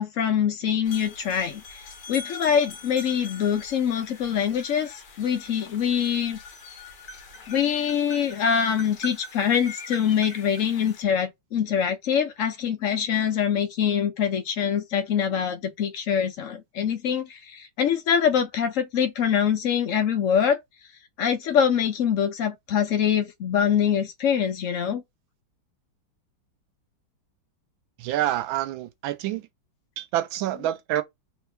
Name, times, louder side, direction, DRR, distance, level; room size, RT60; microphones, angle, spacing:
voice 1, 0.0-6.4 7.5-20.6 21.2-25.0, left 8 dB, 85° left, 0.7 m, -24 dB
sound 1, 0.8-11.0, left 3 dB, 60° left, 1.6 m, -42 dB
voice 2, 28.0-29.5 30.0-31.0, right 13 dB, 80° right, 1.4 m, -27 dB
3.6 x 3.1 x 3.4 m
omnidirectional pair, 2.2 m